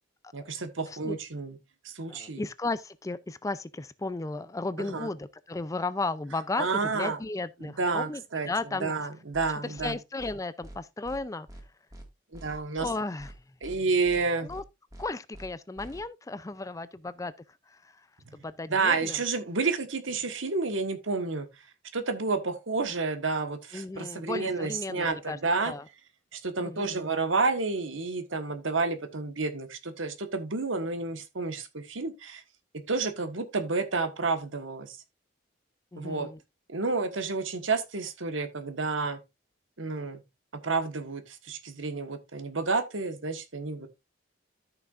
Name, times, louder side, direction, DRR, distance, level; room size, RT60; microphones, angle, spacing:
voice 1, 0.3-1.6 1.8-2.4 4.8-5.1 6.6-7.2 7.6-8.5 8.8-10.0 12.3-12.9 13.6-14.5 18.3-18.4 18.7-21.6 21.9-25.7 26.3-32.4 32.9-35.0 36.0-36.3 36.7-39.2 39.8-40.2 40.6-43.9, right 4 dB, 85° right, 1.4 m, -30 dB
voice 2, 2.1-8.9 9.6-11.5 12.8-13.3 14.4-14.6 15.0-17.3 17.7-18.0 18.3-19.2 23.7-25.4 25.6-25.8 26.6-27.1 35.9-36.4, left 3 dB, 15° left, 0.4 m, -35 dB
sound 1, 9.3-9.5 9.8-9.9 10.2-10.3 10.6-10.8 11.0-11.2 11.5-11.6 11.9-12.0 12.3-12.9 13.2-13.3 13.6-13.8 14.0-14.2 14.5-14.6 14.9-15.0 15.3-15.5 15.8-16.0, right 1 dB, 20° right, 1.9 m, -45 dB
13.5 x 5.9 x 2.5 m
head